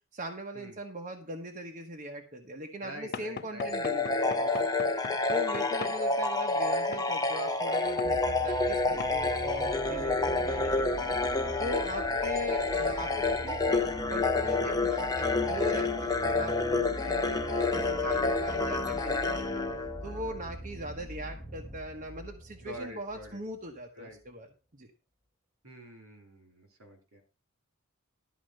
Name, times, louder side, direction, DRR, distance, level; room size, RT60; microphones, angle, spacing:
voice 1, 0.1-4.6 5.3-11.2 11.6-19.6 20.0-24.5 24.7-24.9, equal, 35° right, 2 dB, 1.1 m, -40 dB
voice 2, 2.8-4.2 22.6-23.4 23.9-24.2 25.6-27.2, equal, 70° right, 3 dB, 3.6 m, -46 dB
Knock / Wood, 3.1-6.0 6.9-7.1 8.0-8.2 9.0-9.2, left 5 dB, 45° left, 0.6 m, -41 dB
sound 1, 3.6-20.4, left 3 dB, 15° left, 0.9 m, -29 dB
sound 2, 7.8-23.4 24.2-24.3, equal, ahead, 1.6 m, -43 dB
12.5 x 4.5 x 6.5 m, 0.33 s
head